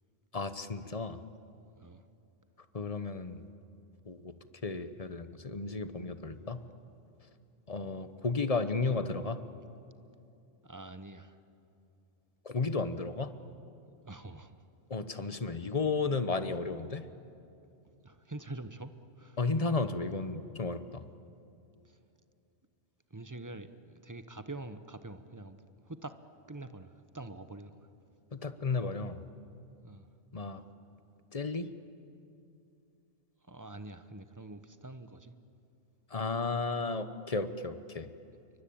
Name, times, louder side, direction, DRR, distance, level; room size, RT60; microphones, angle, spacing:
voice 1, 0.3-1.2 2.7-3.4 4.1-4.3 4.6-6.6 7.7-9.4 12.4-13.3 14.9-17.1 19.4-21.0 28.3-29.2 30.3-30.6 31.3-31.7 36.1-38.1, left 4 dB, 35° left, 11 dB, 1.0 m, -33 dB
voice 2, 8.8-9.3 10.6-11.4 14.0-14.6 18.0-19.4 21.8-22.0 23.1-26.2 26.5-27.9 29.8-30.1 33.5-35.3, right 2 dB, 15° right, 10 dB, 0.9 m, -46 dB
28.5 x 24.0 x 8.7 m, 2.7 s
omnidirectional pair, 1.2 m